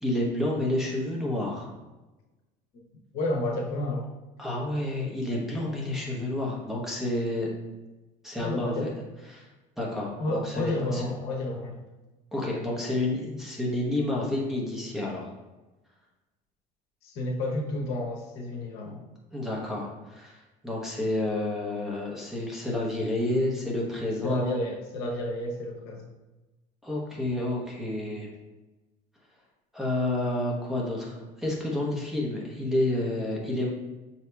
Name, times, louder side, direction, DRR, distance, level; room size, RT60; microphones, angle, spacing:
voice 1, 0.0-1.7 4.4-7.5 8.2-8.9 9.3-9.5 9.8-11.0 12.3-15.3 19.3-24.6 26.8-28.3 29.7-33.7, left 1 dB, ahead, -5 dB, 0.8 m, -30 dB
voice 2, 3.1-4.1 8.4-8.9 10.2-11.8 17.0-19.0 24.2-26.1, left 1 dB, 70° left, 0 dB, 0.8 m, -31 dB
6.1 x 2.8 x 2.3 m, 1.1 s
cardioid pair, 130°, 17 cm